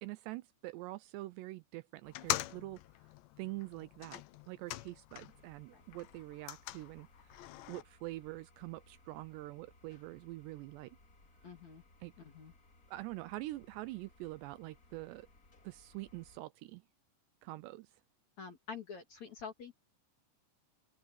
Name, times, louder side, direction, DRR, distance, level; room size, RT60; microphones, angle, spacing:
voice 1, 0.0-2.8 3.4-4.2 4.5-11.0 12.0-12.1 12.9-15.3 15.6-16.8 17.4-17.9, right 18 dB, 85° right, 2.5 m, -45 dB
sound 1, 2.0-5.5 5.8-7.8, left 16 dB, 80° left, 2.9 m, -42 dB
sound 2, 5.3-16.4, left 2 dB, 25° left, 2.1 m, -64 dB
voice 2, 11.4-11.8 12.2-12.5 18.4-19.8, left 6 dB, 45° left, 3.1 m, -47 dB
open air
omnidirectional pair, 5.5 m